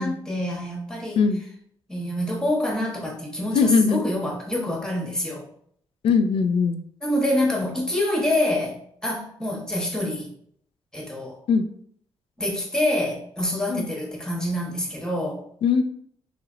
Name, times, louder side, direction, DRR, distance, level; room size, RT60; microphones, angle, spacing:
voice 1, 0.0-1.2 1.9-5.4 7.0-10.3 10.9-11.4 12.4-15.4, left 1 dB, 5° left, -2 dB, 1.0 m, -26 dB
voice 2, 3.5-4.0 6.0-6.8 11.5-11.6 13.7-13.9 15.6-15.8, left 5 dB, 65° left, 9 dB, 0.4 m, -20 dB
3.2 x 3.0 x 2.5 m, 0.66 s
cardioid pair, 90°, 10 cm